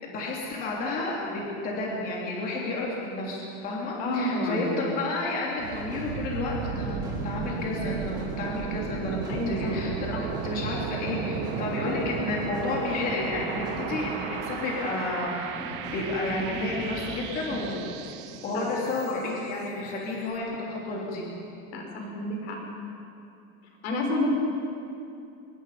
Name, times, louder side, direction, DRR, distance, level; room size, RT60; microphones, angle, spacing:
voice 1, 0.0-7.0 7.2-9.2 9.5-15.6 15.9-17.9 18.4-21.2, left 2 dB, 25° left, -3 dB, 3.4 m, -31 dB
voice 2, 4.0-4.7 9.3-9.8 10.1-10.2 18.5-18.7 21.7-22.6 23.8-24.3, left 1 dB, 90° left, 0 dB, 5.6 m, -29 dB
sound 1, 5.6-17.7, right 2 dB, 10° right, 2.4 m, -39 dB
sound 2, 5.6-19.4, right 8 dB, 55° right, 1.4 m, -35 dB
25.0 x 21.5 x 5.1 m, 2.7 s
supercardioid pair, 180°, 32 cm